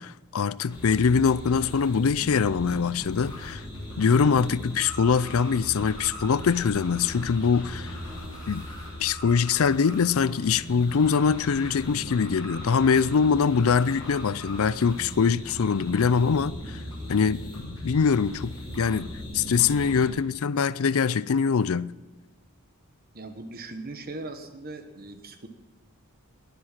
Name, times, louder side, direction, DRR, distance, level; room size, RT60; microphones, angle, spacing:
voice 1, 0.0-3.6 4.0-8.0 8.5-8.7 9.0-16.8 17.1-19.1 19.3-21.9, left 6 dB, 70° left, 0.5 m, -23 dB
sound 1, 0.7-20.1, left 1 dB, 20° left, 6.7 m, -39 dB
voice 2, 23.1-25.5, right 2 dB, 45° right, 1.2 m, -39 dB
20.5 x 7.9 x 7.4 m
head